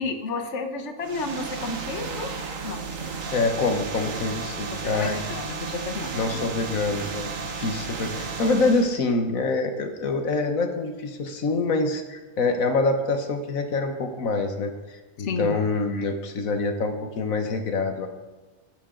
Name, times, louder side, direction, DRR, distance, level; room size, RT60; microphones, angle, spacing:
voice 1, 0.0-2.3 2.6-2.8 4.7-6.1 15.2-15.6, left 3 dB, 60° left, 6 dB, 1.5 m, -31 dB
sound 1, 1.0-9.0, right 5 dB, 75° right, 1.6 m, -33 dB
voice 2, 3.0-5.2 6.1-18.1, left 3 dB, 85° left, 6 dB, 1.6 m, -26 dB
20.0 x 10.5 x 3.9 m, 1.2 s
omnidirectional pair, 1.4 m